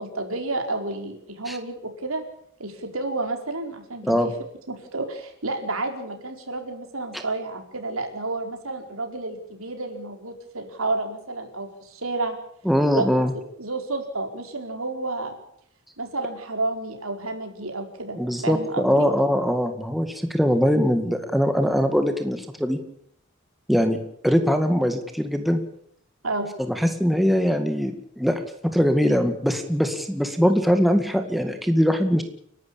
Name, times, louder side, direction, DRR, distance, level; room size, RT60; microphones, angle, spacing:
voice 1, 0.0-2.2 2.6-4.2 4.7-12.4 12.9-13.2 13.6-15.3 16.0-19.1 26.2-26.5, right 2 dB, 90° right, 5 dB, 4.5 m, -30 dB
voice 2, 12.7-13.3 18.2-22.8 23.7-25.6 26.7-32.2, equal, ahead, 6 dB, 2.0 m, -22 dB
30.0 x 12.0 x 8.6 m, 0.68 s
head